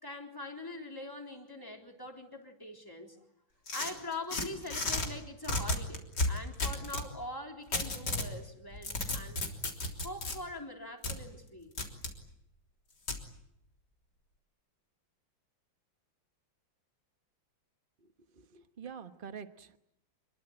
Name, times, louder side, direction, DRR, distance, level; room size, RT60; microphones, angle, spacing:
voice 1, 0.0-3.2 3.7-9.5 10.0-11.7, left 2 dB, 10° left, 2 dB, 3.7 m, -43 dB
sound 1, 3.7-5.1 5.4-7.1 7.7-8.3 8.7-10.4 11.0-11.2 11.8-12.1 13.1-13.2, left 2 dB, 55° left, 4.1 m, -33 dB
voice 2, 18.4-19.8, right 7 dB, 30° right, 9 dB, 1.2 m, -46 dB
27.0 x 22.5 x 8.9 m, 0.79 s
omnidirectional pair, 2.2 m